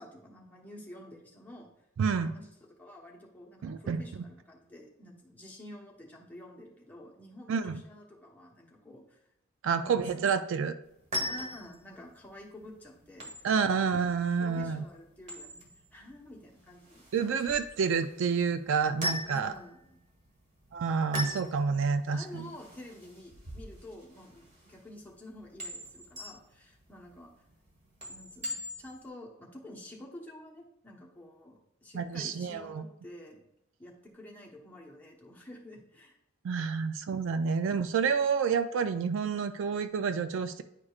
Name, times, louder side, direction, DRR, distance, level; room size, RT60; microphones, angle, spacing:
voice 1, 0.0-1.7 2.1-9.2 9.7-10.2 11.3-13.3 13.7-14.0 14.4-17.6 19.3-20.1 21.7-27.3 28.1-33.5 33.8-36.2, left 1 dB, 10° left, -3 dB, 1.0 m, -49 dB
voice 2, 2.0-2.3 3.6-4.2 7.5-7.8 9.6-10.7 13.4-14.8 17.1-19.5 20.7-22.5 31.9-32.8 36.4-40.6, right 5 dB, 60° right, 10 dB, 0.3 m, -29 dB
sound 1, 10.8-29.1, equal, 35° right, 1.4 m, -42 dB
9.7 x 4.9 x 2.4 m, 0.81 s
head